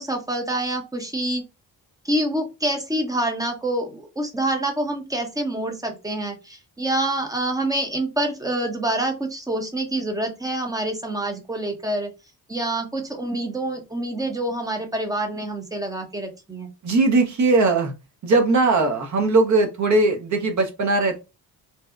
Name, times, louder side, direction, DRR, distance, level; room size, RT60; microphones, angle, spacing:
voice 1, 0.0-1.4 2.0-12.1 12.5-16.7, right 1 dB, 10° right, 3 dB, 0.6 m, -26 dB
voice 2, 16.8-17.9 18.2-21.2, right 3 dB, 50° right, 5 dB, 0.7 m, -19 dB
2.7 x 2.0 x 2.3 m, 0.27 s
cardioid pair, 95°, 37 cm